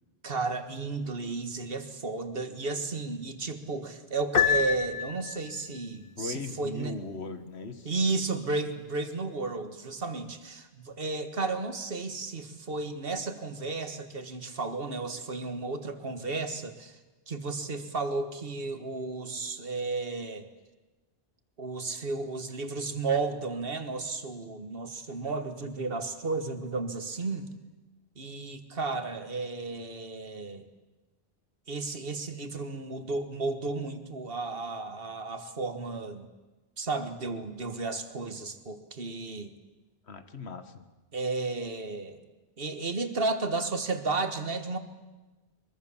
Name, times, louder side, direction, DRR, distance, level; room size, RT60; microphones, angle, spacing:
voice 1, 0.2-6.9 7.9-17.0 17.3-20.4 21.6-27.5 28.2-30.6 31.7-36.3 36.8-39.5 41.1-42.2 42.6-44.8, right 3 dB, 60° right, 8 dB, 1.9 m, -33 dB
Piano, 4.3-5.6, left 7 dB, 60° left, 1.5 m, -26 dB
voice 2, 6.0-7.9 40.1-40.9, left 3 dB, 90° left, 9 dB, 1.8 m, -39 dB
23.5 x 23.0 x 7.3 m, 1.2 s
omnidirectional pair, 1.1 m